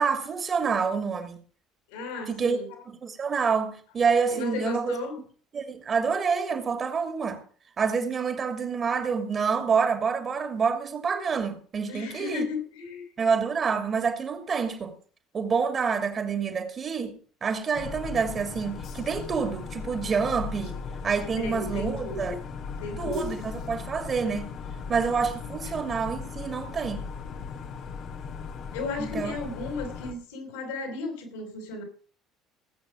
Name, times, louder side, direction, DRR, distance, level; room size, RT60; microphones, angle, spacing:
voice 1, 0.0-1.4 2.3-2.6 3.0-5.0 5.5-7.4 7.8-12.5 13.2-15.0 15.3-20.8 21.0-22.4 23.0-24.5 24.9-27.1 29.0-29.4, right 5 dB, 35° right, 2.7 m, -27 dB
voice 2, 1.9-2.7 4.3-5.2 11.9-13.0 21.3-22.4 22.8-23.3 28.7-31.8, left 3 dB, 65° left, 5.0 m, -34 dB
sound 1, 17.7-30.1, left 5 dB, 50° left, 2.0 m, -37 dB
19.5 x 8.8 x 5.1 m
figure-of-eight pair, 60°, 0 cm